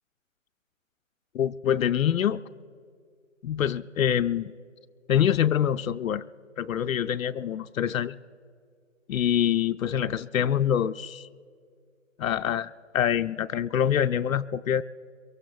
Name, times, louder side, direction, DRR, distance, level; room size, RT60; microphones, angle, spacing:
voice 1, 1.3-2.4 3.4-4.5 5.1-6.2 6.6-8.2 9.1-11.3 12.2-14.8, left 9 dB, 85° left, 11 dB, 0.5 m, -25 dB
27.0 x 23.0 x 2.3 m, 2.1 s
hypercardioid pair, 175°, 39 cm